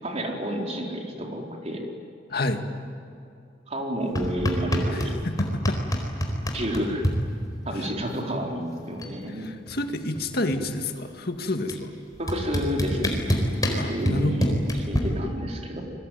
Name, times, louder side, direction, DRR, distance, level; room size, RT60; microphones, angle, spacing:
voice 1, 0.0-1.8 3.7-5.1 6.5-7.0 7.7-9.5 12.2-13.2 13.7-14.5 14.9-15.8, equal, 35° right, 1 dB, 4.2 m, -30 dB
voice 2, 2.3-2.6 4.9-5.8 7.8-7.9 9.4-11.9 13.8-14.6, left 2 dB, 60° left, 6 dB, 2.1 m, -29 dB
sound 1, 4.2-5.1 5.4-7.2 8.4-8.5 8.8-9.2 9.5-10.8 11.7-11.8 12.3-15.0, equal, 20° left, 4.4 m, -26 dB
29.5 x 22.0 x 9.4 m, 2.5 s
head